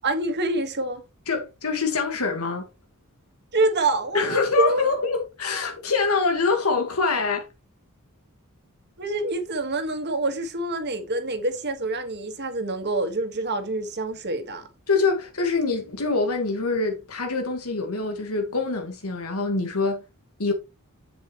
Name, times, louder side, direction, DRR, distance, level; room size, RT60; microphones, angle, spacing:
voice 1, 0.0-1.0 3.5-4.8 9.0-14.7, right 2 dB, 50° right, 1.8 m, -26 dB
voice 2, 1.3-2.7 4.1-7.5 14.9-20.0 20.4-20.5, left 4 dB, 75° left, 1.8 m, -25 dB
8.5 x 7.9 x 3.2 m
head